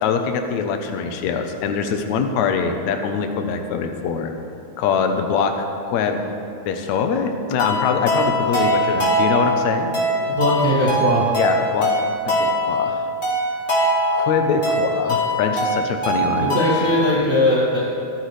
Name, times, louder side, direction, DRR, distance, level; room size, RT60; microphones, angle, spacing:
voice 1, 0.0-4.3 4.8-5.6 5.8-6.3 6.7-9.9 11.4-11.9 12.2-13.1 14.1-16.7, left 6 dB, 75° left, 5 dB, 2.2 m, -23 dB
sound 1, 7.6-17.0, equal, 30° left, 3.5 m, -22 dB
voice 2, 10.2-11.3 16.4-17.9, equal, 30° right, -9 dB, 2.4 m, -19 dB
24.5 x 10.0 x 3.3 m, 2.6 s
omnidirectional pair, 3.5 m